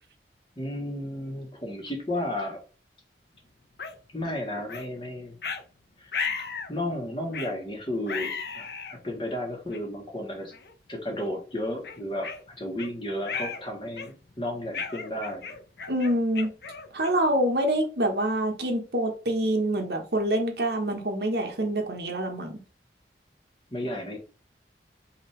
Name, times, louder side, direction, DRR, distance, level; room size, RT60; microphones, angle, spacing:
voice 1, 0.6-2.6 4.1-5.4 6.0-6.1 6.4-10.5 10.9-12.3 12.6-15.5 23.7-24.2, left 1 dB, 30° left, 1.4 m, -33 dB
sound 1, 3.8-3.9 4.7-4.9 5.4-5.6 6.1-6.7 7.3-7.6 8.1-9.0 9.7-9.8 10.5-10.7 11.2-11.3 11.8-12.9 13.3-13.6 14.0-14.3 14.7-17.3, left 5 dB, 65° left, 0.7 m, -35 dB
voice 2, 15.9-16.5 16.9-22.6, right 1 dB, 65° right, 1.2 m, -26 dB
5.6 x 2.9 x 3.2 m
head